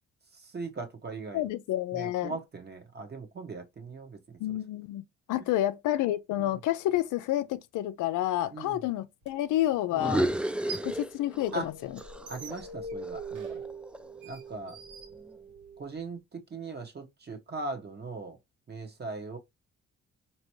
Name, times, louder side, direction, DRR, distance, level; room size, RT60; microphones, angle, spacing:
voice 1, 0.4-1.4 1.9-4.2 6.4-6.5 8.5-8.8 11.5-11.7 12.3-13.6 14.2-14.8 15.8-18.4 18.7-19.4, right 3 dB, 35° right, 1.2 m, -39 dB
voice 2, 1.3-2.4 4.4-5.0 5.3-10.2 10.8-12.0, left 13 dB, 85° left, 0.5 m, -29 dB
sound 1, 9.2-9.3 10.4-11.0 11.4-15.8, right 5 dB, 85° right, 1.1 m, -47 dB
sound 2, 9.9-11.7 12.0-14.2, right 1 dB, 5° right, 0.3 m, -32 dB
sound 3, 10.9-15.8, right 3 dB, 55° right, 1.0 m, -44 dB
4.4 x 2.9 x 3.0 m
cardioid pair, 90°, 30 cm